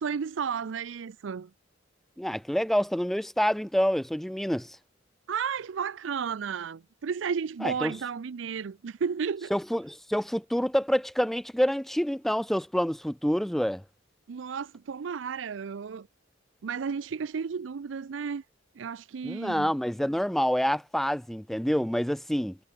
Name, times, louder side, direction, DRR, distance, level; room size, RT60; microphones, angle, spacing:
voice 1, 0.0-1.5 5.3-9.5 14.3-16.1 16.6-18.4 18.8-19.7, right 6 dB, 80° right, 0.5 m, -33 dB
voice 2, 2.2-4.8 7.6-7.9 9.5-13.8 19.2-22.6, equal, ahead, 0.3 m, -27 dB
head